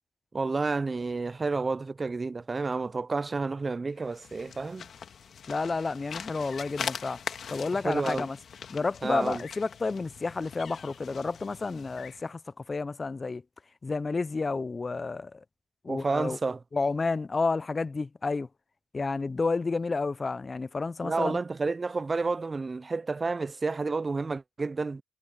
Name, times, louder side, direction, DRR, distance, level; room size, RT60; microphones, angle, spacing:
voice 1, 0.3-4.9 7.8-8.3 9.0-9.4 15.9-16.6 21.0-25.0, right 3 dB, 35° right, 0.5 m, -30 dB
sound 1, 4.0-12.3, left 7 dB, 60° left, 2.1 m, -41 dB
voice 2, 5.5-7.2 7.5-8.4 8.7-12.4 12.7-13.4 13.8-15.4 15.8-16.4 16.7-18.5 18.9-21.4, left 3 dB, 35° left, 0.5 m, -30 dB
supercardioid pair, 60°, 0 cm